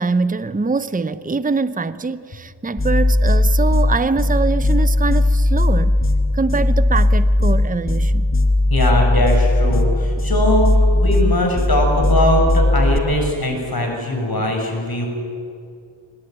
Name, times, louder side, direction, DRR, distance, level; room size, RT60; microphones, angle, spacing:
voice 1, 0.0-6.0 6.3-8.3, right 4 dB, 15° right, 0.8 m, -23 dB
sound 1, 2.8-13.0, left 1 dB, 25° left, 2.0 m, -17 dB
voice 2, 8.7-15.1, left 1 dB, 45° left, 7.0 m, -20 dB
23.5 x 20.0 x 9.1 m
wide cardioid pair, 70°, 49 cm